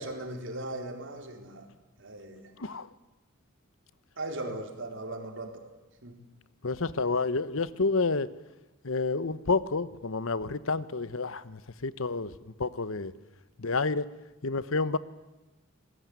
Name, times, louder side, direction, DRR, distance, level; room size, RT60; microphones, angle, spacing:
voice 1, 0.0-1.7 2.0-2.4 4.2-5.6 6.0-6.2, right 1 dB, 60° right, 4.0 m, -38 dB
voice 2, 6.6-8.3 8.8-12.3 12.6-13.1 13.6-14.1 14.4-15.0, left 3 dB, 70° left, 1.0 m, -29 dB
26.0 x 20.0 x 9.5 m
head